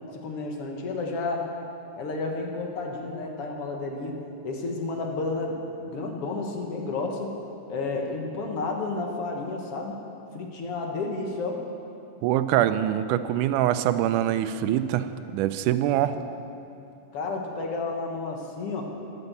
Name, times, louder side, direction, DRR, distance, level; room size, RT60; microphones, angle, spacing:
voice 1, 0.1-1.5 2.0-4.2 4.4-5.6 5.9-7.3 7.7-10.0 10.3-11.6 17.1-18.8, left 3 dB, 55° left, 2 dB, 2.0 m, -31 dB
voice 2, 12.2-15.1 15.3-16.1, right 12 dB, 90° right, 11 dB, 2.1 m, -24 dB
11.5 x 10.5 x 8.0 m, 2.7 s
omnidirectional pair, 3.5 m